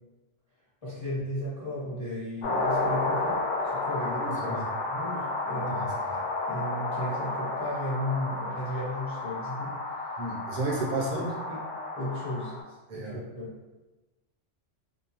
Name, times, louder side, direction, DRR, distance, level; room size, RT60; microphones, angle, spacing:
voice 1, 0.8-9.8 11.1-11.6 11.9-12.5 12.9-13.6, left 1 dB, 30° left, -11 dB, 0.9 m, -35 dB
sound 1, 2.4-12.6, left 2 dB, 70° left, 0.8 m, -32 dB
voice 2, 4.2-4.7 5.7-6.1 10.2-11.3 12.9-13.2, right 2 dB, 45° right, -4 dB, 0.7 m, -33 dB
2.6 x 2.2 x 2.9 m, 1.1 s
omnidirectional pair, 1.3 m